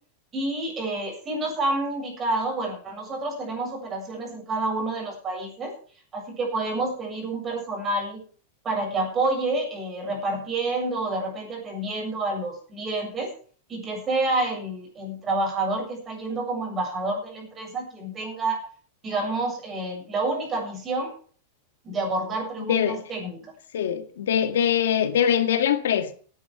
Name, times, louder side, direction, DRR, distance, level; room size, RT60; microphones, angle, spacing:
voice 1, 0.3-5.7 6.1-8.2 8.6-13.3 13.7-18.6 19.0-21.1 21.8-23.4, right 2 dB, 20° right, 7.4 m, -28 dB
voice 2, 23.7-26.1, left 9 dB, 90° left, 1.9 m, -22 dB
17.0 x 10.0 x 5.0 m
supercardioid pair, 155°, 0 cm